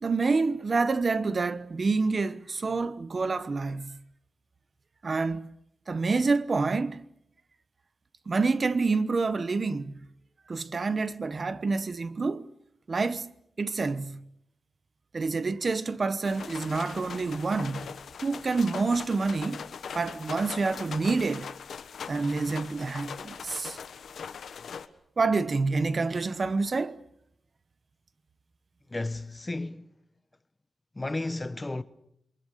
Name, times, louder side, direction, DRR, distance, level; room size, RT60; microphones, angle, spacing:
voice 1, 0.0-4.0 5.0-5.5 5.9-7.0 8.3-10.0 10.5-12.5 12.9-13.3 13.6-14.2 15.1-17.9 18.2-19.7 19.9-21.5 22.1-23.8 25.2-27.0, right 4 dB, 40° right, 1.0 m, -27 dB
sound 1, 16.2-24.9, left 6 dB, 90° left, 1.3 m, -41 dB
voice 2, 28.9-29.9 30.9-31.8, left 2 dB, 20° left, 1.1 m, -33 dB
28.0 x 23.0 x 6.6 m
wide cardioid pair, 125°, 0 cm